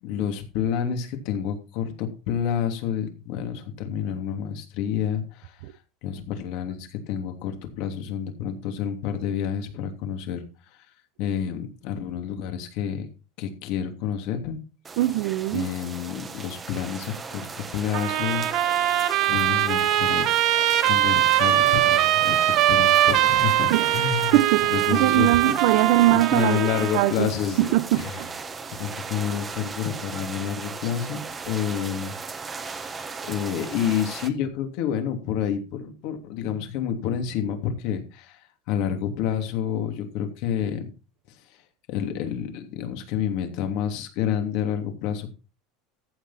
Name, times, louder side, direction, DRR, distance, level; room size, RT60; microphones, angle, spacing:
voice 1, 0.0-5.6 6.0-10.4 11.2-13.1 13.4-14.6 15.5-20.3 20.8-24.4 24.7-25.5 26.1-28.2 28.8-31.2 31.5-32.1 32.4-40.9 41.9-45.3, left 8 dB, 55° left, 2.9 m, -29 dB
sound 1, 14.8-34.3, right 4 dB, 15° right, 1.3 m, -37 dB
voice 2, 15.0-15.7 23.7-24.0 24.3-27.3 27.6-28.3, right 16 dB, 65° right, 0.9 m, -22 dB
Trumpet, 17.9-27.1, right 13 dB, 40° right, 1.4 m, -22 dB
14.0 x 8.1 x 4.3 m
supercardioid pair, 165°, 0 cm